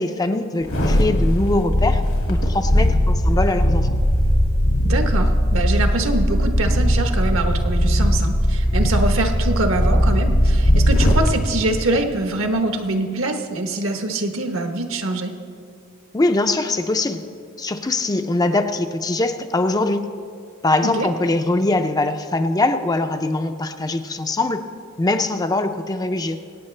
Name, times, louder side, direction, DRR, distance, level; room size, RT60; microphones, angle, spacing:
voice 1, 0.0-2.0 2.3-4.0 16.1-17.3 17.6-20.1 20.6-24.6 25.0-26.4, left 2 dB, 20° left, 7 dB, 0.4 m, -22 dB
sound 1, 0.6-11.3 11.7-11.8, equal, 85° left, 2.2 m, -18 dB
voice 2, 4.8-15.3 20.8-21.1, right 2 dB, 65° right, 6 dB, 1.1 m, -24 dB
24.0 x 8.9 x 3.3 m, 2.3 s
head